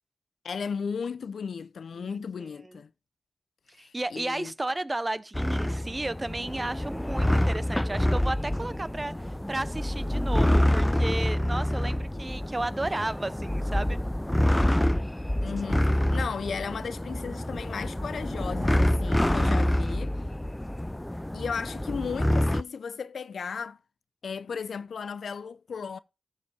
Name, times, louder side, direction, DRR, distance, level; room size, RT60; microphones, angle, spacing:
voice 1, 0.4-2.9 3.7-4.5 15.4-20.2 21.3-23.8 24.2-26.0, left 6 dB, 85° left, 0.7 m, -35 dB
voice 2, 2.0-2.5 3.8-9.1 9.5-14.0, right 2 dB, 30° right, 0.9 m, -33 dB
sound 1, 5.3-22.6, left 1 dB, 10° left, 0.5 m, -27 dB
14.0 x 4.9 x 6.0 m
cardioid pair, 65°, 0 cm